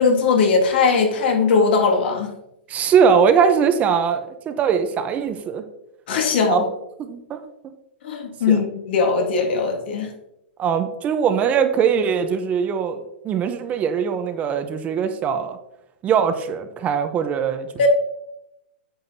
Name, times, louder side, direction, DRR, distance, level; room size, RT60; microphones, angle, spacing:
voice 1, 0.0-2.3 6.1-6.7 8.0-10.1 17.8-17.9, left 5 dB, 65° left, 2 dB, 2.0 m, -19 dB
voice 2, 2.7-5.7 6.4-6.7 7.0-7.4 8.5-8.6 10.6-15.6 16.0-17.9, right 7 dB, 25° right, 8 dB, 0.7 m, -21 dB
9.2 x 7.7 x 2.7 m, 0.85 s
hypercardioid pair, 145°, 6 cm